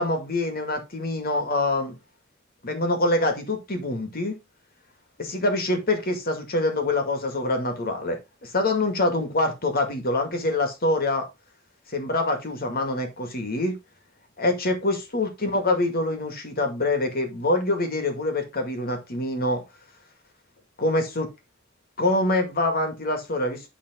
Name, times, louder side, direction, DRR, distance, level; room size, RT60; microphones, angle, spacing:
voice 1, 0.0-1.9 2.6-4.4 5.2-11.2 11.9-13.7 14.4-19.6 20.8-21.3 22.0-23.7, left 2 dB, 50° left, 2.1 m, -25 dB
11.0 x 3.9 x 3.7 m
head